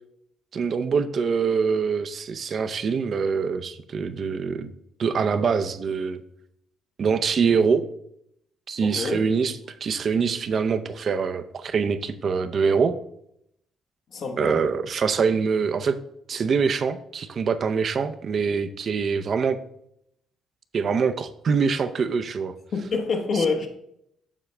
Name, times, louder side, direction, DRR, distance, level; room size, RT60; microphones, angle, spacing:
voice 1, 0.5-4.7 5.0-6.2 7.0-7.8 8.7-13.0 14.4-16.0 16.3-19.6 20.7-22.5, right 5 dB, 55° right, 10 dB, 0.6 m, -24 dB
voice 2, 8.8-9.2 14.1-14.6 22.7-23.7, left 4 dB, 65° left, 2 dB, 1.1 m, -26 dB
7.2 x 6.7 x 3.3 m, 0.74 s
cardioid pair, 90°, 0 cm